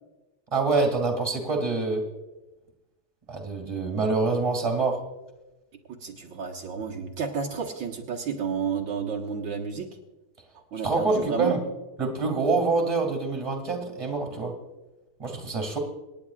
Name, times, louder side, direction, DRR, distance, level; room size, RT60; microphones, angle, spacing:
voice 1, 0.5-2.0 3.3-5.0 10.8-11.6 12.0-14.5 15.2-15.8, right 3 dB, 15° right, 2 dB, 2.1 m, -26 dB
voice 2, 5.9-9.9 10.5-11.6, right 6 dB, 70° right, -1 dB, 1.9 m, -31 dB
27.0 x 10.5 x 2.4 m, 1.0 s
omnidirectional pair, 2.2 m